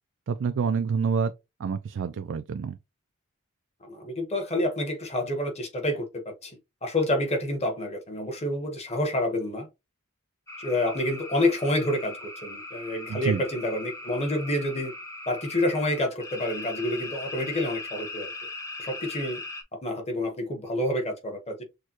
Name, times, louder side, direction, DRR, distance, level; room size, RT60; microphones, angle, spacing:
voice 1, 0.3-1.3 1.6-2.8 13.1-13.4, right 6 dB, 55° right, 0.3 m, -27 dB
voice 2, 3.8-9.7 10.6-14.9 15.3-18.3 18.8-19.4 19.7-21.6, left 1 dB, 30° left, 1.2 m, -28 dB
sound 1, 10.5-19.6, left 2 dB, 15° left, 0.8 m, -39 dB
6.4 x 2.3 x 2.9 m
head